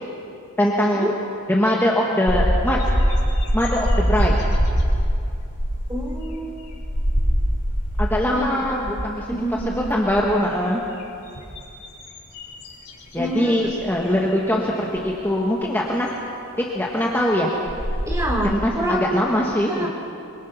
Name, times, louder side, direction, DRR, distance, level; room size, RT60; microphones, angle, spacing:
voice 1, 0.6-1.1 1.5-2.8 3.5-4.4 8.0-10.8 13.1-16.2 16.6-17.5 18.4-19.9, left 1 dB, 10° left, -3 dB, 1.7 m, -22 dB
sound 1, 2.3-8.3 8.7-9.1 9.4-10.4 11.0-13.3 13.7-13.9 15.0-15.1 17.2-17.3 17.7-18.6, equal, 90° left, 5.2 m, -23 dB
voice 2, 5.9-6.8 8.3-8.9 9.3-10.0 13.2-13.7 18.1-19.2 19.7-19.9, equal, 15° right, 0 dB, 3.4 m, -27 dB
25.0 x 25.0 x 6.0 m, 2.6 s
head